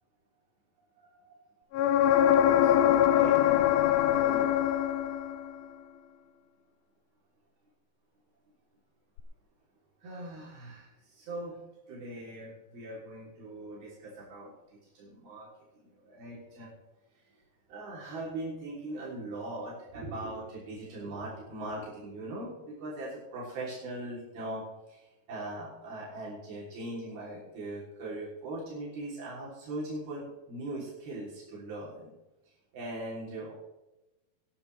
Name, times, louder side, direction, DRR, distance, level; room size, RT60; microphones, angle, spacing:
voice 1, 1.0-1.4 2.6-3.7 4.0-4.6 10.0-11.6 11.9-15.5 15.8-16.7 17.7-32.1 32.7-33.5, right 2 dB, 75° right, -6 dB, 5.2 m, -40 dB
sound 1, 1.7-5.5 9.2-9.3, left 11 dB, 80° left, 2.4 m, -23 dB
20.5 x 13.0 x 3.3 m, 1.0 s
omnidirectional pair, 4.4 m